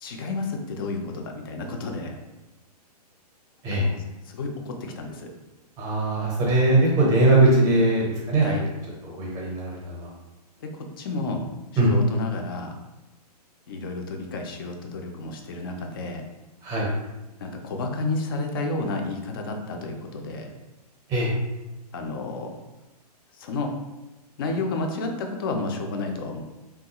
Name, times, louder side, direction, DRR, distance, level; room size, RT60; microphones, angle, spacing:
voice 1, 0.0-2.2 3.7-5.3 8.4-8.6 10.6-11.4 11.8-12.7 13.7-16.2 17.4-20.5 21.9-22.5 23.4-23.7 24.4-26.4, left 3 dB, 35° left, 3 dB, 0.4 m, -31 dB
voice 2, 5.8-8.6 9.0-10.1 11.8-11.9 16.6-16.9 21.1-21.3, right 2 dB, 15° right, -3 dB, 0.6 m, -21 dB
3.4 x 2.3 x 2.8 m, 1.0 s
hypercardioid pair, 160°, 21 cm